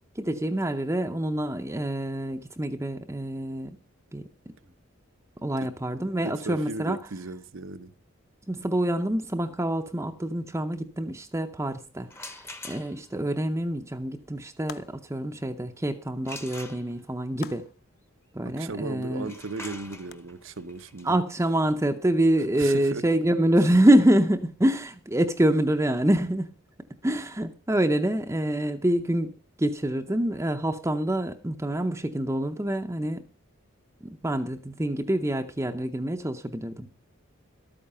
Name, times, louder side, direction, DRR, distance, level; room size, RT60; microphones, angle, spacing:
voice 1, 0.2-3.8 4.1-4.2 5.4-7.0 8.5-17.7 18.3-19.3 21.0-26.5 27.0-29.3 29.6-33.3 34.0-36.9, right 1 dB, 15° right, 0.6 m, -26 dB
voice 2, 6.2-7.9 18.4-21.2 22.6-23.0, right 3 dB, 65° right, 0.8 m, -36 dB
sound 1, 12.1-13.2 16.2-17.3 19.1-24.8, left 2 dB, 10° left, 0.9 m, -45 dB
sound 2, 14.7-15.3 17.4-18.0 20.1-20.2, left 7 dB, 45° left, 0.5 m, -44 dB
12.5 x 8.8 x 5.5 m
head